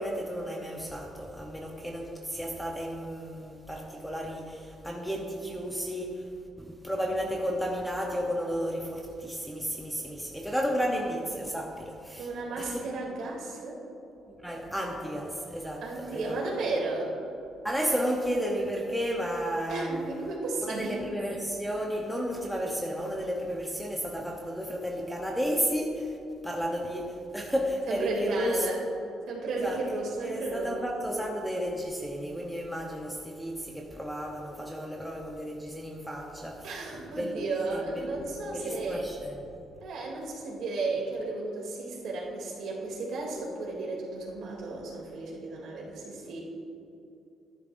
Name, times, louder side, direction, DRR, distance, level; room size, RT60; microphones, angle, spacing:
voice 1, 0.0-6.2 6.6-12.3 12.6-12.8 14.3-16.4 17.6-20.0 20.6-26.2 26.4-28.7 29.5-29.8 30.2-36.6 37.1-37.3 37.7-38.2 38.5-39.5, equal, ahead, 0 dB, 0.8 m, -33 dB
voice 2, 12.2-13.8 15.8-17.1 19.7-21.0 27.9-28.8 29.3-30.7 36.6-39.1 39.8-46.4, right 3 dB, 65° right, -3 dB, 2.7 m, -33 dB
14.5 x 11.0 x 2.6 m, 2.7 s
cardioid pair, 170°, 0 cm